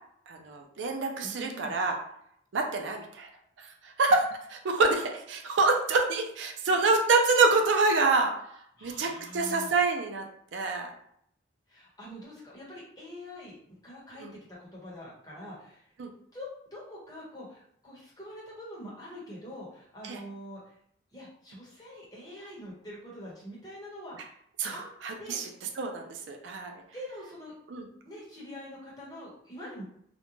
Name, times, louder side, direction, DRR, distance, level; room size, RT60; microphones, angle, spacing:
voice 1, 0.3-2.0 2.5-3.3 3.6-8.3 8.8-10.2 10.5-10.9 14.2-14.3 16.0-16.1 20.0-20.2 24.6-25.5 25.8-26.7 27.7-27.8, right 3 dB, 80° right, 3 dB, 0.4 m, -26 dB
voice 2, 1.2-1.7 8.8-9.7 11.7-14.3 14.6-15.9 16.3-20.7 21.1-24.4 24.7-24.9 25.2-25.6 26.9-27.5 28.0-29.8, equal, 20° left, -7 dB, 0.9 m, -44 dB
2.5 x 2.1 x 3.0 m, 0.68 s
head